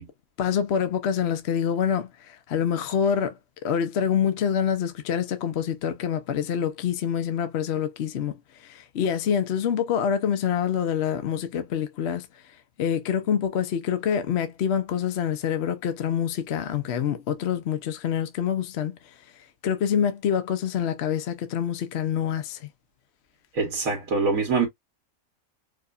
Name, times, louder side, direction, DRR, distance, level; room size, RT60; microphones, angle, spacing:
voice 1, 0.4-8.3 8.6-12.3 12.8-18.9 19.6-22.7, left 8 dB, 60° left, 0.8 m, -26 dB
voice 2, 23.6-24.7, right 4 dB, 80° right, 1.6 m, -24 dB
4.8 x 2.2 x 2.4 m
omnidirectional pair, 1.4 m